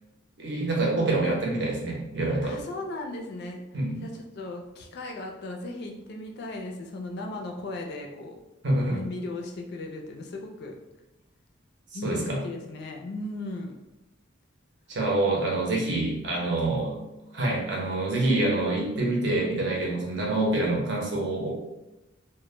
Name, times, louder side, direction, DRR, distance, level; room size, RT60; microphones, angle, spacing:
voice 1, 0.4-2.6 3.7-4.0 8.6-9.0 12.0-12.4 14.9-17.0 17.3-21.5, right 2 dB, 60° right, -2 dB, 0.6 m, -26 dB
voice 2, 2.4-3.6 4.0-8.4 8.9-10.8 11.9-13.7, left 2 dB, 55° left, 2 dB, 0.3 m, -37 dB
2.1 x 2.0 x 3.0 m, 0.95 s
head